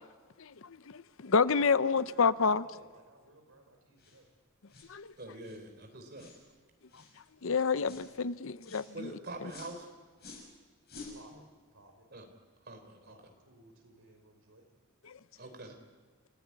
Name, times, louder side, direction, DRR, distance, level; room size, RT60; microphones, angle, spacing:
voice 1, 0.4-2.6 4.9-5.1 6.9-7.0 7.4-9.1 15.0-15.2, left 5 dB, 65° left, 0.7 m, -29 dB
voice 2, 1.4-4.3 7.7-8.2 11.1-11.4 11.7-12.1 13.0-14.7, right 2 dB, 75° right, 5.4 m, -57 dB
sound 1, 4.0-4.2 4.7-4.9 5.4-5.6 6.1-6.4 6.9-7.2 7.8-8.1 8.6-8.9 9.5-9.8 10.2-10.5 10.9-11.2, left 3 dB, 45° left, 7.0 m, -50 dB
voice 3, 5.2-6.3 8.9-9.9 11.3-11.4 12.1-12.3 12.6-13.1 15.4-15.8, right 2 dB, 45° right, 3.6 m, -45 dB
28.5 x 15.5 x 9.5 m
head